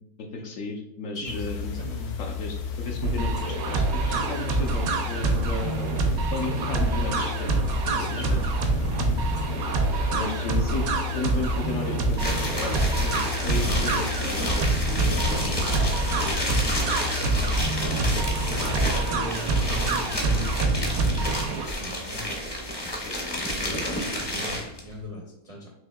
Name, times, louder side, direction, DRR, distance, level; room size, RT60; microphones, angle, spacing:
voice 1, 0.2-1.7 2.2-5.9 6.3-7.6 7.9-8.4 10.1-14.5 14.9-15.6 18.9-19.1 23.0-24.0, left 3 dB, 70° left, 3 dB, 0.9 m, -34 dB
sound 1, 1.2-18.9, left 6 dB, 90° left, 1.2 m, -33 dB
voice 2, 1.7-2.1 5.2-5.5 7.9-8.4 8.9-9.2 9.8-10.2 16.9-22.3 23.9-24.0 24.3-25.7, left 1 dB, 45° right, -3 dB, 0.4 m, -39 dB
sound 2, 3.0-21.7, right 3 dB, 75° right, 1.1 m, -26 dB
sound 3, 12.1-24.8, equal, 25° left, 0.6 m, -30 dB
6.3 x 2.7 x 2.2 m, 0.89 s
omnidirectional pair, 1.6 m